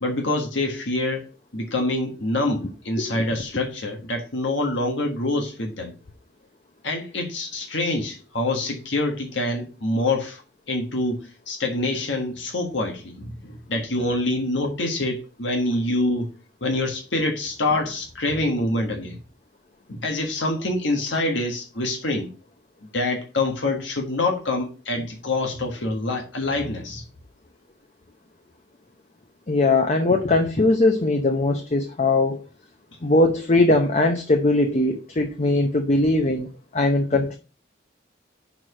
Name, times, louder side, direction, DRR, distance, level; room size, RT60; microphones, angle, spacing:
voice 1, 0.0-5.9 6.8-10.4 10.7-16.3 16.6-19.2 19.9-22.3 22.9-27.0 37.1-37.2, left 2 dB, 85° left, 1.5 m, -26 dB
voice 2, 29.5-32.4 33.0-37.4, left 2 dB, 40° left, 0.7 m, -20 dB
6.0 x 4.7 x 6.3 m
head